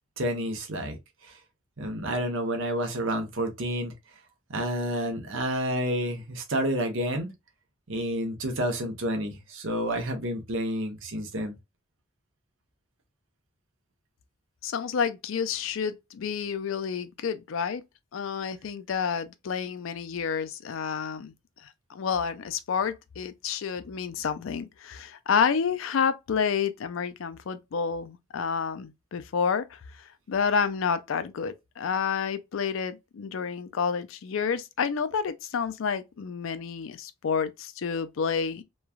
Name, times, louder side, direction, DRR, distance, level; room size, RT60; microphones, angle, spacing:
voice 1, 0.2-1.0 1.2-1.3 1.8-3.9 4.5-7.3 7.9-11.5, right 1 dB, 70° right, 0.8 m, -29 dB
voice 2, 14.6-17.8 18.1-21.3 21.9-29.8 30.3-38.6, left 6 dB, 70° left, 0.4 m, -29 dB
3.1 x 2.3 x 2.3 m
head